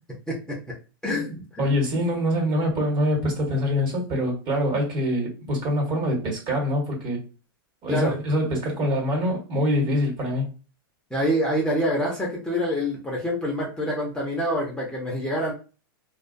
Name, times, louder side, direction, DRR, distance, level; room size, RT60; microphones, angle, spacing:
voice 1, 0.3-0.7 1.0-1.7 7.9-8.1 11.1-15.5, equal, 5° left, 0.6 m, -26 dB
voice 2, 1.6-7.2 7.8-10.5, equal, 40° right, 1.2 m, -24 dB
2.3 x 2.2 x 2.5 m
hypercardioid pair, 125°, 12 cm